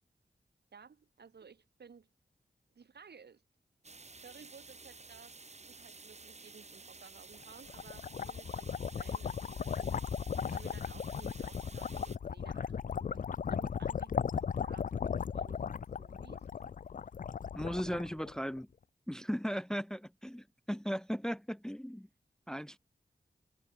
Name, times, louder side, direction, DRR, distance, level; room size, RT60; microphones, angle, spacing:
voice 1, 0.7-2.1 2.7-3.4 4.2-5.4 5.7-10.0 10.5-15.6 16.0-16.5, right 6 dB, 85° right, 3.9 m, -56 dB
sound 1, 3.8-12.2, right 3 dB, 40° right, 2.5 m, -53 dB
sound 2, 7.4-18.6, left 7 dB, 55° left, 0.4 m, -37 dB
voice 2, 17.5-18.7 19.1-22.1 22.5-22.8, equal, 5° left, 0.6 m, -37 dB
wide cardioid pair, 75°, 17 cm